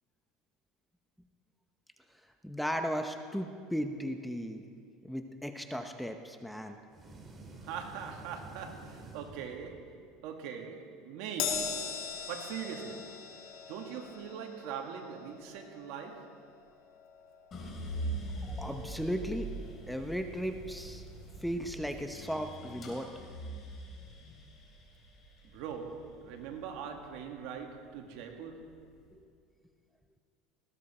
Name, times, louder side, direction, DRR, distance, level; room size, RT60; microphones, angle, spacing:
voice 1, 2.4-4.6 5.0-6.8 18.6-19.5 19.9-21.0 21.4-23.1, equal, ahead, 0.9 m, -36 dB
sound 1, 6.9-10.1, right 3 dB, 25° right, 2.3 m, -50 dB
voice 2, 7.6-12.0 12.3-13.2 13.7-16.4 25.4-28.9, right 7 dB, 70° right, 2.1 m, -42 dB
Crash cymbal, 11.4-18.0 18.3-18.6 19.6-19.7, left 6 dB, 70° left, 2.6 m, -40 dB
sound 2, 17.5-27.7 28.2-28.9, right 1 dB, 35° left, 4.6 m, -43 dB
19.5 x 16.0 x 4.4 m
supercardioid pair, 125°, 0 cm